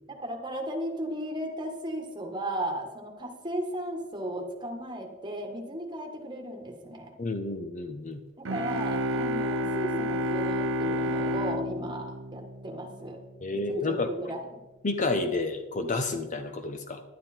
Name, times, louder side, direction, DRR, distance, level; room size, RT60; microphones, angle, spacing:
voice 1, 0.1-7.1 8.4-13.2 13.5-14.6, right 1 dB, 20° right, 2 dB, 1.6 m, -35 dB
voice 2, 7.2-8.2 13.4-14.1 14.8-17.0, left 3 dB, 40° left, 8 dB, 0.7 m, -30 dB
sound 1, 8.4-13.1, equal, 65° right, 0.7 m, -30 dB
11.5 x 9.8 x 4.4 m, 1.1 s
head